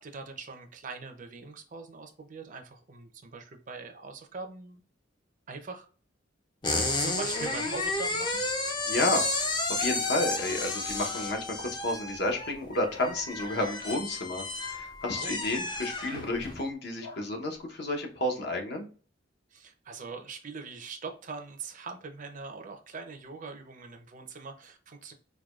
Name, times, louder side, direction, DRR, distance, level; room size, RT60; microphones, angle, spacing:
voice 1, 0.0-4.8 5.5-5.9 6.7-8.4 15.2-15.3 19.5-25.1, right 4 dB, 40° right, 6 dB, 0.5 m, -42 dB
sound 1, 6.6-16.6, left 2 dB, 25° left, 0.5 m, -32 dB
voice 2, 8.9-18.9, left 1 dB, 55° left, 2 dB, 0.8 m, -31 dB
sound 2, 13.6-14.1 15.0-15.3 17.0-17.3, left 5 dB, 80° left, 1.5 m, -45 dB
4.7 x 2.2 x 2.3 m, 0.39 s
head